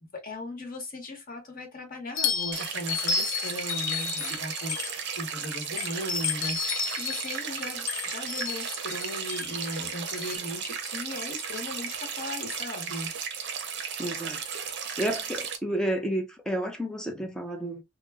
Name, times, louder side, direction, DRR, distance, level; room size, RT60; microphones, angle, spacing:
voice 1, 0.0-13.1, left 1 dB, 45° left, 1.0 m, -38 dB
sound 1, 2.2-5.3 5.8-10.4, left 6 dB, 65° left, 0.3 m, -32 dB
sound 2, 2.5-15.6, right 6 dB, 60° right, 0.6 m, -35 dB
voice 2, 14.0-14.4 15.0-17.8, right 1 dB, 5° left, 0.5 m, -31 dB
2.1 x 2.0 x 3.4 m
head